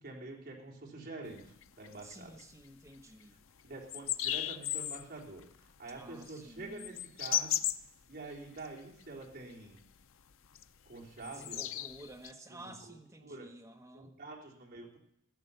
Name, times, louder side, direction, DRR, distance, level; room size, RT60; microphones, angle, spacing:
voice 1, 0.0-2.3 3.6-7.6 8.1-9.8 10.9-11.8 12.5-12.7 13.2-13.5 13.9-15.0, right 2 dB, 50° right, -2 dB, 3.3 m, -47 dB
sound 1, 1.3-2.6 2.9-3.0 3.4-3.5 3.8-5.0 5.4-8.7 9.0-9.5 9.8-10.0 10.4-12.3, left 11 dB, 70° left, 0.6 m, -36 dB
voice 2, 2.0-3.4 5.9-7.0 11.2-14.1, right 1 dB, 15° right, 3 dB, 1.4 m, -52 dB
15.0 x 10.5 x 6.9 m, 0.76 s
head